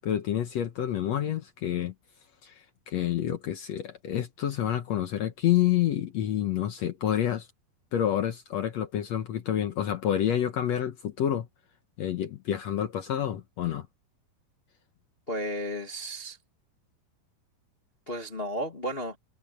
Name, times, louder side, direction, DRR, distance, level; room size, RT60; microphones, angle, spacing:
voice 1, 0.0-1.9 2.4-7.5 7.9-11.5 12.0-13.9, left 11 dB, 75° left, 1.5 m, -28 dB
voice 2, 15.3-16.4 18.1-19.2, equal, 35° left, 0.9 m, -33 dB
omnidirectional pair, 4.6 m